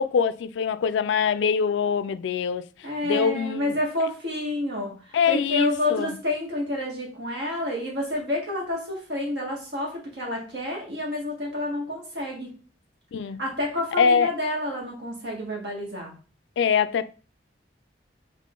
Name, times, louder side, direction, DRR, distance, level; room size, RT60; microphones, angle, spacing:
voice 1, 0.0-2.7 3.0-3.7 5.1-6.1 13.1-13.4 14.0-14.3 16.6-17.1, left 6 dB, 85° left, 0.3 m, -23 dB
voice 2, 2.8-12.5 13.4-16.1, left 1 dB, 70° right, 1.7 m, -29 dB
3.7 x 3.6 x 3.7 m
head